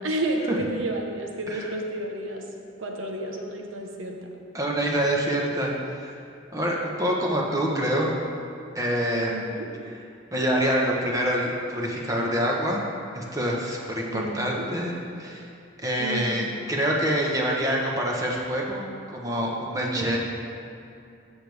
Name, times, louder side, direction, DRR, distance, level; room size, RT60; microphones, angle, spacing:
voice 1, 0.0-2.4 2.8-4.2 9.3-9.7 14.0-14.6 16.0-16.5 20.0-20.2, right 2 dB, 85° right, 1 dB, 1.1 m, -31 dB
voice 2, 4.5-6.1 6.5-8.1 8.7-9.3 10.3-12.8 13.1-15.5 15.8-18.8 19.1-20.2, equal, 15° right, -2 dB, 1.2 m, -26 dB
14.0 x 6.8 x 3.5 m, 2.5 s
head